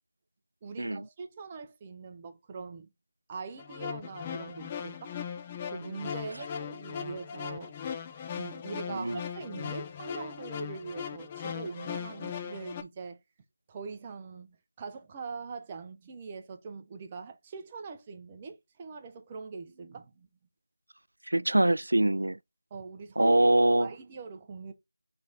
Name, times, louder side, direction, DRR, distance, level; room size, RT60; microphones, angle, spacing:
voice 1, 0.6-2.9 3.3-5.2 5.7-7.7 8.3-13.2 13.7-20.3 22.7-23.3 23.8-24.7, right 5 dB, 20° right, 0.6 m, -42 dB
sound 1, 3.6-12.8, left 8 dB, 20° left, 0.4 m, -39 dB
voice 2, 8.9-9.2 21.3-22.4 23.2-23.9, right 1 dB, 80° right, 0.3 m, -24 dB
4.0 x 3.3 x 3.8 m
figure-of-eight pair, 165°, 0 cm